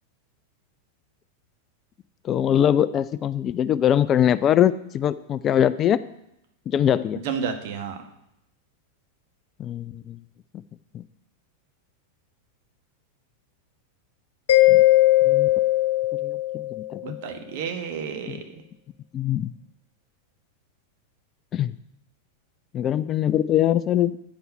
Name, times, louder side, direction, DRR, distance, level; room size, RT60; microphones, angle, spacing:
voice 1, 2.2-6.0 6.7-7.2 9.6-10.2 10.9-11.0 14.7-14.8 15.2-15.5 16.2-17.2 18.3-18.4 19.1-19.5 21.5-21.7 22.7-24.1, left 10 dB, 30° left, 15 dB, 0.3 m, -22 dB
voice 2, 7.2-8.0 17.0-18.6, right 6 dB, 50° right, 6 dB, 1.4 m, -31 dB
Mallet percussion, 14.5-17.0, left 17 dB, 60° left, 0.8 m, -19 dB
9.4 x 7.9 x 5.5 m, 0.81 s
figure-of-eight pair, 90°, 0 cm